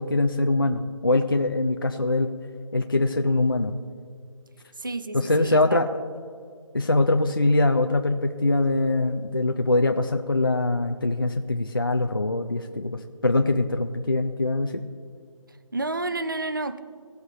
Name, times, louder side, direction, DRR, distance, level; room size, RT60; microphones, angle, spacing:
voice 1, 0.0-2.3 2.7-3.7 5.1-5.9 6.7-14.8, left 2 dB, 40° left, 5 dB, 0.4 m, -23 dB
voice 2, 4.8-5.8 15.7-16.8, right 2 dB, 40° right, 11 dB, 0.4 m, -30 dB
17.5 x 8.0 x 2.8 m, 2.2 s
figure-of-eight pair, 180°, 18 cm